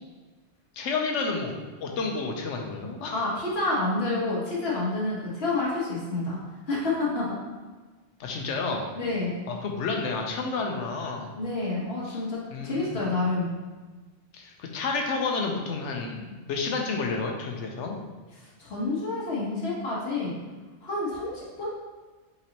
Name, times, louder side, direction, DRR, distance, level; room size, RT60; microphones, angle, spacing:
voice 1, 0.7-3.2 8.2-8.9 9.5-11.3 12.1-12.2 12.5-13.0 14.3-18.0, left 4 dB, 80° left, 2 dB, 1.0 m, -30 dB
voice 2, 3.1-6.4 6.7-7.3 8.9-9.4 11.3-13.5 18.4-20.3 20.8-21.7, left 2 dB, 60° left, -5 dB, 1.4 m, -28 dB
4.6 x 4.0 x 2.8 m, 1.3 s
omnidirectional pair, 1.2 m